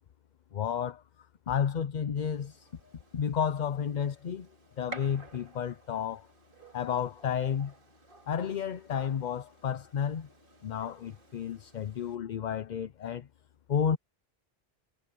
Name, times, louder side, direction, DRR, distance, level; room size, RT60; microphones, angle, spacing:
voice 1, 0.5-1.0 1.5-2.7 3.1-4.5 4.8-6.3 6.7-7.7 8.3-10.3 10.6-13.3 13.7-14.0, left 8 dB, 50° left, 0.7 m, -31 dB
Gunshot gunfire, 2.2-12.1, right 2 dB, 55° right, 2.7 m, -53 dB
omnidirectional pair, 1.1 m